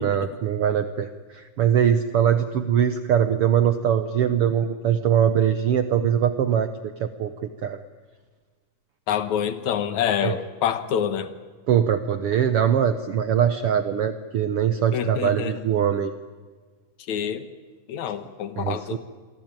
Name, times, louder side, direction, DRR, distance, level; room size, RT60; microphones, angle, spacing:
voice 1, 0.0-7.8 10.2-10.3 11.7-16.1 18.6-19.0, right 9 dB, 70° right, 10 dB, 1.3 m, -22 dB
voice 2, 9.1-11.3 14.9-15.5 17.1-17.5 17.9-19.0, left 8 dB, 70° left, 11 dB, 2.4 m, -26 dB
27.5 x 23.0 x 9.0 m, 1.5 s
omnidirectional pair, 3.7 m